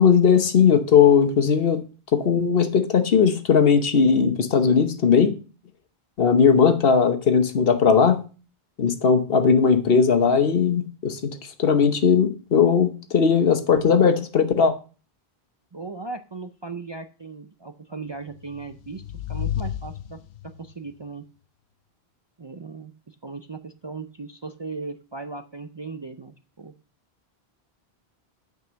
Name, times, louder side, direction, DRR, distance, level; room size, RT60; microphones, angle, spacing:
voice 1, 0.0-5.3 6.2-8.3 8.8-14.7, left 6 dB, 65° left, 9 dB, 1.2 m, -18 dB
voice 2, 15.7-21.3 22.4-26.7, right 4 dB, 35° right, 8 dB, 0.4 m, -37 dB
sound 1, 18.4-20.7, left 11 dB, 80° left, 0.9 m, -32 dB
8.4 x 5.4 x 6.2 m, 0.36 s
omnidirectional pair, 1.1 m